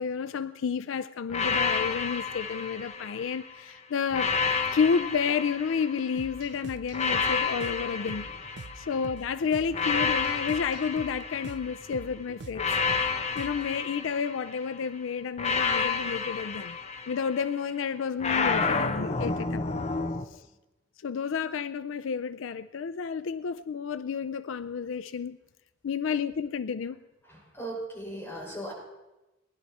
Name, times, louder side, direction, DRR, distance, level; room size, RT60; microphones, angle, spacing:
voice 1, 0.0-4.3 4.7-8.3 8.8-12.8 13.1-16.8 17.1-19.6 20.3-20.5 21.0-25.4 25.8-27.0, left 6 dB, 75° left, 13 dB, 0.4 m, -31 dB
sound 1, 1.3-3.5 4.1-6.3 6.9-9.1 9.7-11.9 12.6-14.7 15.4-17.5 18.2-20.2, left 4 dB, 35° left, 0.6 m, -30 dB
sound 2, 6.2-13.8, right 3 dB, 60° right, 0.6 m, -45 dB
voice 2, 27.3-28.7, right 1 dB, 10° left, -6 dB, 5.7 m, -38 dB
19.5 x 11.0 x 4.2 m, 1.0 s
head